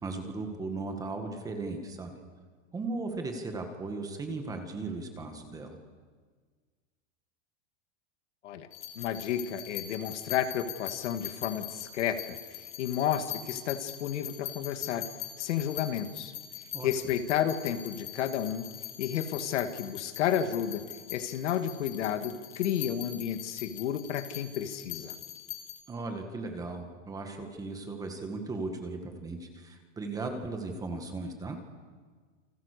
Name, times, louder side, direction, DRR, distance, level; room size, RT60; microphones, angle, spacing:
voice 1, 0.0-2.2 2.7-5.8 16.7-16.9 25.9-31.6, right 3 dB, 10° right, 4 dB, 1.8 m, -37 dB
sound 1, 8.7-25.8, left 12 dB, 40° left, 2.2 m, -42 dB
voice 2, 9.0-12.4 12.8-15.0 15.4-16.3 16.8-18.7 19.0-20.8 21.1-25.1, left 9 dB, 75° left, 8 dB, 2.3 m, -31 dB
29.0 x 25.5 x 6.8 m, 1.5 s
supercardioid pair, 175°, 36 cm